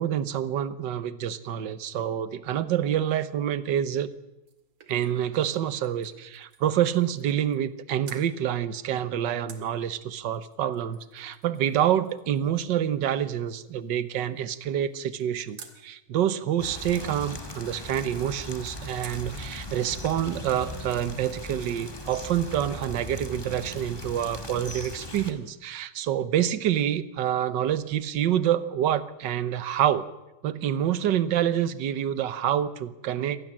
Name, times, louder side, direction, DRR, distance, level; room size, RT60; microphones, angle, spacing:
voice 1, 0.0-4.1 4.9-30.0 30.4-33.4, right 10 dB, 60° right, 14 dB, 1.6 m, -27 dB
sound 1, 4.1-7.8 8.0-8.3 9.5-15.8 19.0-19.4 19.8-19.9 20.2-21.2 21.4-21.5, right 6 dB, 85° right, 3.0 m, -53 dB
sound 2, 16.6-25.3, left 1 dB, 10° left, 1.9 m, -39 dB
26.0 x 18.5 x 7.5 m, 0.99 s
omnidirectional pair, 2.4 m